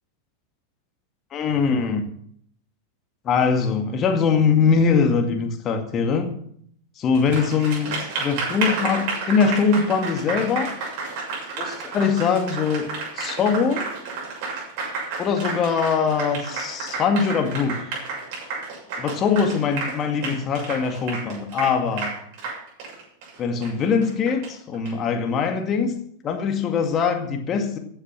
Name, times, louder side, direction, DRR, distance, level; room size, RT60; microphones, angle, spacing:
voice 1, 1.3-2.1 3.2-6.3 7.0-10.7 11.5-12.9 13.1-13.9 15.2-17.9 19.0-22.1 23.4-26.0 26.2-27.8, left 5 dB, 30° left, 5 dB, 2.1 m, -22 dB
Applause, 7.1-24.9, right 4 dB, 45° right, 7.2 m, -31 dB
15.0 x 9.2 x 6.0 m, 0.66 s
figure-of-eight pair, 90°, 0 cm